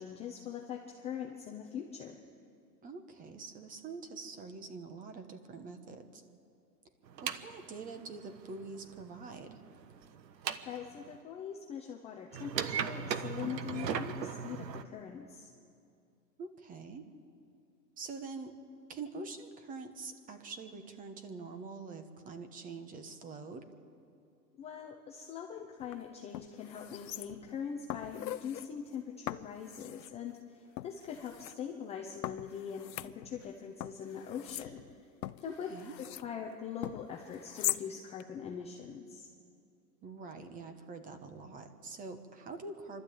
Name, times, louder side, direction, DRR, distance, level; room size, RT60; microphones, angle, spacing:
voice 1, 0.0-2.2 10.6-15.5 24.6-34.8 35.4-35.7 36.0-39.3, left 7 dB, 15° left, 0 dB, 0.6 m, -42 dB
voice 2, 2.8-6.2 7.2-9.6 16.4-17.0 18.0-18.5 18.9-23.7 35.5-35.9 40.0-43.0, right 4 dB, 15° right, 8 dB, 1.1 m, -45 dB
sound 1, 7.1-11.2 12.3-14.8, right 7 dB, 80° right, 1.3 m, -38 dB
sound 2, 25.8-25.9 26.3-27.6 27.9-28.7 29.3-30.2 30.8-31.5 32.2-33.5 33.8-36.3 36.8-37.9 38.2-38.3, left 13 dB, 85° left, 0.8 m, -41 dB
25.5 x 12.5 x 8.6 m, 2.5 s
hypercardioid pair, 140°, 50 cm